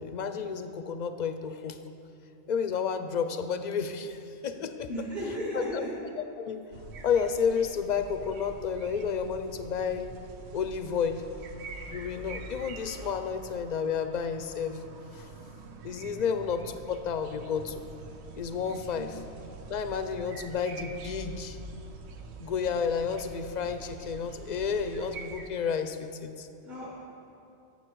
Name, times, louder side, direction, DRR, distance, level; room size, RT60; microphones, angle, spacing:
voice 1, 0.0-1.8 2.5-4.9 5.5-5.8 6.4-6.6 7.0-10.1 10.5-11.2 11.9-14.8 15.1-15.3 15.8-17.8 18.4-19.2 19.7-21.6 22.4-26.5, left 6 dB, 55° left, 9 dB, 0.5 m, -31 dB
voice 2, 4.9-5.9 18.9-19.3 26.6-27.1, equal, 40° right, -7 dB, 2.1 m, -35 dB
sound 1, 6.7-25.5, right 3 dB, 75° right, 1.0 m, -45 dB
12.5 x 7.2 x 4.6 m, 2.7 s
omnidirectional pair, 1.1 m